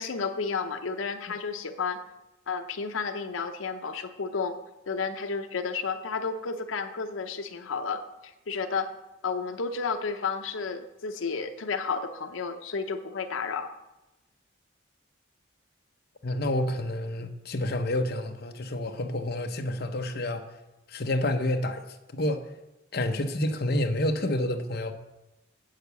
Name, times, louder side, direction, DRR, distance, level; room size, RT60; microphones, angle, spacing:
voice 1, 0.0-2.0 2.5-4.6 4.9-8.9 9.2-13.7, left 5 dB, 85° left, 7 dB, 0.7 m, -32 dB
voice 2, 16.2-20.4 20.9-22.5 22.9-24.9, left 1 dB, 50° left, 4 dB, 0.8 m, -29 dB
8.2 x 6.6 x 6.8 m, 0.99 s
head